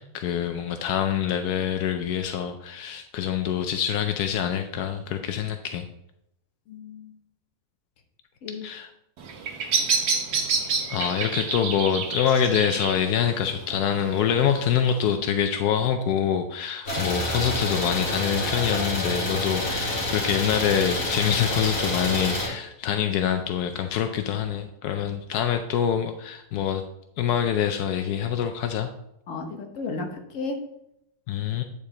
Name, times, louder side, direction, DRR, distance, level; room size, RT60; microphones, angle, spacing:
voice 1, 0.0-5.9 8.6-8.9 10.9-26.8 27.2-28.9 31.3-31.6, left 9 dB, 80° left, 7 dB, 1.1 m, -25 dB
voice 2, 6.7-7.1 8.4-8.7 29.3-30.6, left 3 dB, 60° left, 4 dB, 1.3 m, -33 dB
Bird vocalization bird call bird song, 9.2-15.2, right 5 dB, 85° right, 1.5 m, -29 dB
Idling, 16.9-22.5, left 1 dB, 40° left, 2.1 m, -27 dB
8.3 x 5.2 x 3.8 m, 0.79 s
omnidirectional pair, 1.6 m